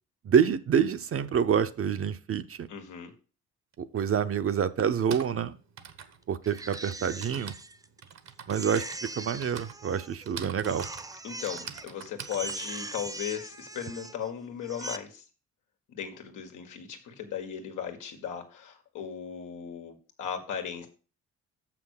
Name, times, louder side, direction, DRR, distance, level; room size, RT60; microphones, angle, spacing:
voice 1, 0.2-2.7 3.8-5.6 6.3-7.5 8.5-8.9 9.2-10.9, right 7 dB, 45° right, 10 dB, 0.8 m, -27 dB
voice 2, 2.7-3.1 11.2-15.2 15.9-20.9, left 8 dB, 80° left, 4 dB, 1.8 m, -37 dB
Typing, 3.7-3.8 4.8-13.9, right 8 dB, 65° right, 1.1 m, -45 dB
Crying sobbing, 6.4-8.1 8.5-10.3 10.6-11.9 12.2-14.3 14.6-15.0, right 2 dB, 10° right, 0.7 m, -41 dB
6.8 x 6.0 x 6.5 m, 0.35 s
cardioid pair, 90°, 30 cm